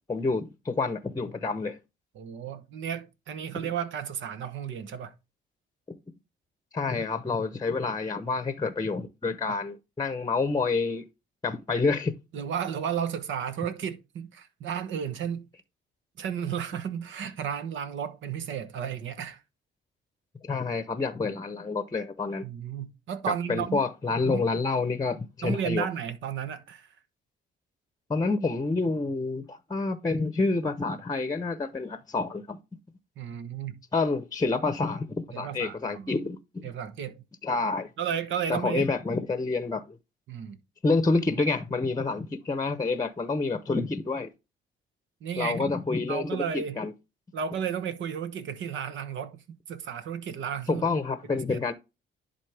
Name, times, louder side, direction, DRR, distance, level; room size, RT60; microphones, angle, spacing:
voice 1, 0.1-1.8 6.7-11.0 11.4-12.1 20.4-22.5 23.5-25.9 28.1-32.6 33.9-36.7 37.4-37.9 38.5-40.0 40.8-44.3 45.4-46.9 50.7-51.7, left 3 dB, 20° left, 0.8 m, -28 dB
voice 2, 2.1-5.1 9.5-9.6 12.3-15.5 16.2-19.4 22.4-23.9 24.2-24.4 25.4-26.9 33.2-33.8 35.3-36.2 36.6-37.2 38.0-38.9 40.3-40.6 45.2-45.7 46.1-46.8 47.3-50.8 51.3-51.6, right 8 dB, 75° right, 1.1 m, -33 dB
10.5 x 4.2 x 3.4 m
cardioid pair, 90°, 20 cm